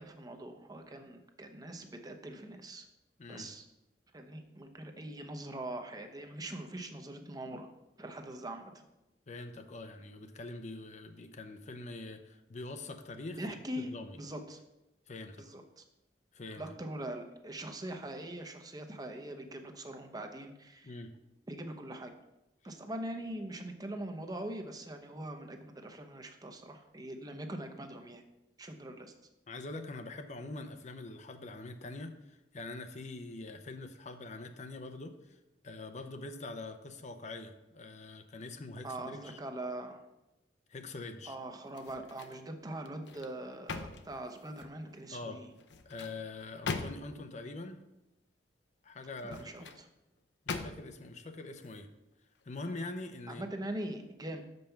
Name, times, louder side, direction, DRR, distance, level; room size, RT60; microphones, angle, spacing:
voice 1, 0.0-2.8 3.3-3.6 4.1-7.7 8.0-8.8 13.4-14.6 15.4-15.8 16.6-21.0 21.5-22.1 22.6-28.2 28.6-29.1 38.8-40.1 41.3-45.5 49.2-49.9 53.3-54.4, right 1 dB, 20° right, 5 dB, 0.8 m, -42 dB
voice 2, 9.3-13.4 13.8-14.2 15.1-15.4 16.3-16.6 20.8-21.1 29.5-35.4 35.6-39.4 40.7-41.4 45.1-45.4 45.9-47.8 48.8-49.7 50.5-51.9 52.4-53.4, left 2 dB, 45° left, 7 dB, 0.7 m, -44 dB
sound 1, 41.7-42.4 42.9-44.8 45.6-47.3 49.1-49.8 50.5-51.1 51.6-51.8, left 4 dB, 85° left, 0.7 m, -42 dB
6.7 x 5.3 x 5.8 m, 0.93 s
head